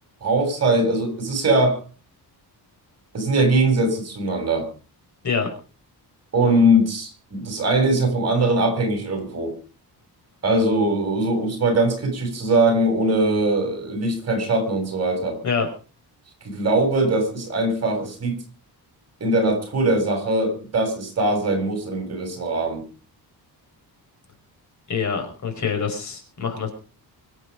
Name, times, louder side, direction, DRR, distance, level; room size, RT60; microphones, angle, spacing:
voice 1, 0.2-1.8 3.1-4.7 6.3-9.5 10.4-15.4 16.4-18.4 19.2-22.8, right 1 dB, 40° right, 4 dB, 7.3 m, -21 dB
voice 2, 24.9-26.7, left 5 dB, 45° left, 5 dB, 5.3 m, -25 dB
24.5 x 9.4 x 5.2 m, 0.38 s
wide cardioid pair, 180°, 39 cm